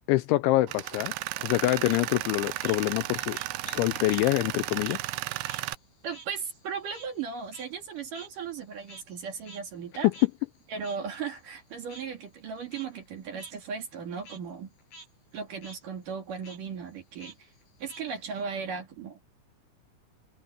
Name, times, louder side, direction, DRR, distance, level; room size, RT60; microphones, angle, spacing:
voice 1, 0.1-1.1 1.4-3.4 3.7-5.0, left 17 dB, 80° left, 2.8 m, -26 dB
Tools, 0.7-5.8, right 17 dB, 85° right, 2.3 m, -34 dB
Frog, 2.6-4.3 4.6-9.2 9.5-9.6 10.1-10.3 10.8-11.0 11.9-12.0 12.6-12.9 13.4-13.5 13.9-14.4 14.8-15.1 15.4-15.8 16.4-16.6 17.2-18.4, right 2 dB, 60° left, 9.7 m, -50 dB
voice 2, 6.0-10.1 10.7-14.7 15.3-17.5 17.8-19.2, right 6 dB, 50° right, 3.4 m, -37 dB
omnidirectional pair, 5.7 m